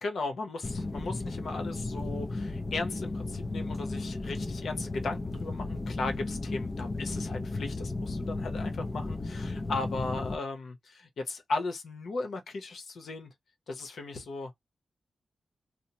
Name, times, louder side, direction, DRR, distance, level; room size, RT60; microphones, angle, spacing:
voice 1, 0.0-13.3 13.7-14.6, left 3 dB, 70° left, 0.8 m, -37 dB
sound 1, 0.6-10.4, left 2 dB, 25° left, 0.5 m, -34 dB
2.8 x 2.0 x 2.8 m
wide cardioid pair, 140°, 0 cm